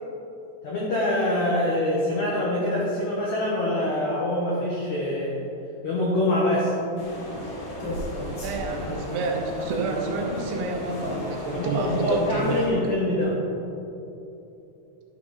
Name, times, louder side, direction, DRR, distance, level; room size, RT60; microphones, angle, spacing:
voice 1, 0.6-5.4 5.8-6.7 11.5-13.4, left 1 dB, 80° left, -5 dB, 1.6 m, -25 dB
sound 1, 7.0-12.7, left 1 dB, 50° left, 1.6 m, -33 dB
voice 2, 8.4-12.7, right 4 dB, 75° right, 2 dB, 2.6 m, -29 dB
11.0 x 7.0 x 4.9 m, 2.9 s
omnidirectional pair, 5.3 m